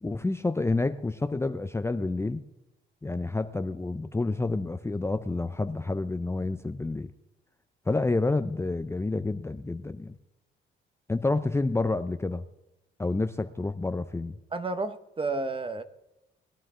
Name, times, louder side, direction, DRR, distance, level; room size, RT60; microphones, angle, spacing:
voice 1, 0.0-2.4 3.0-7.1 7.9-10.1 11.1-12.4 13.0-14.4, left 2 dB, 15° left, 10 dB, 0.6 m, -29 dB
voice 2, 14.5-15.8, right 3 dB, 25° right, 11 dB, 1.0 m, -31 dB
20.0 x 11.5 x 3.7 m, 0.91 s
cardioid pair, 90°, 20 cm